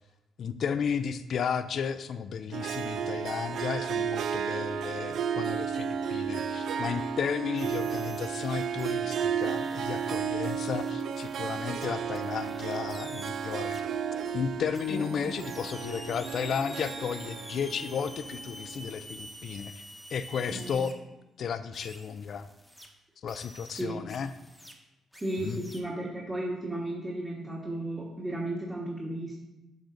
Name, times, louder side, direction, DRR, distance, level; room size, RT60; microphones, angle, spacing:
voice 1, 0.4-13.8 14.3-19.8 20.1-21.0 21.4-22.5 23.2-24.3 25.4-25.6, left 7 dB, 60° left, 11 dB, 0.3 m, -33 dB
Harp, 2.5-19.0, right 7 dB, 70° right, 0.3 m, -33 dB
sound 1, 7.6-9.0 9.4-13.8 14.7-20.9 21.7-22.9 23.3-24.7 25.1-25.8, equal, ahead, 1.0 m, -48 dB
voice 2, 14.9-15.3 20.5-20.8 23.8-24.0 25.2-29.4, right 1 dB, 15° right, -4 dB, 1.4 m, -34 dB
7.3 x 5.9 x 2.6 m, 0.96 s
cardioid pair, 90°, 0 cm